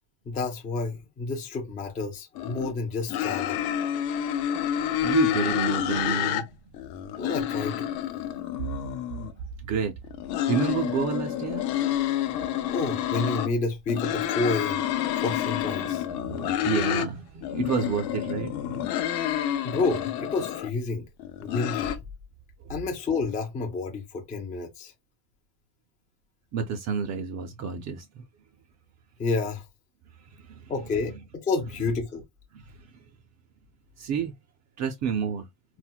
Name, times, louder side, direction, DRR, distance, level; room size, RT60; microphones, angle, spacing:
voice 1, 0.3-3.6 7.2-7.9 12.7-14.9 15.2-16.0 19.6-21.1 21.4-22.0 22.7-24.9 29.2-29.6 30.7-32.2, left 3 dB, 20° left, 0.4 m, -30 dB
sound 1, 2.4-2.7 3.1-6.4 6.7-9.3 10.0-13.5 13.9-17.1 17.4-20.7 21.2-22.0, left 11 dB, 60° left, 0.7 m, -29 dB
voice 2, 4.9-6.5 8.3-8.4 9.7-9.9 10.5-11.6 16.1-18.8 26.5-28.2 30.4-30.7 32.5-32.6 34.0-34.3 34.8-35.5, right 7 dB, 40° right, 0.4 m, -29 dB
4.2 x 2.0 x 2.2 m
cardioid pair, 150°, 42 cm